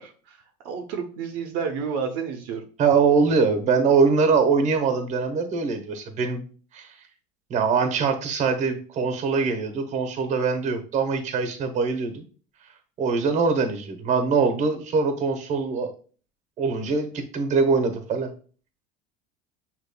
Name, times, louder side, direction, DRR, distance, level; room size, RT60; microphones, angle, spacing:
voice 1, 0.0-2.6, right 6 dB, 65° right, 4 dB, 0.7 m, -31 dB
voice 2, 2.8-6.5 6.7-7.0 7.5-12.2 13.0-15.9 16.6-18.3, right 5 dB, 35° right, 7 dB, 0.9 m, -23 dB
6.5 x 3.0 x 2.2 m, 0.40 s
supercardioid pair, 135°, 20 cm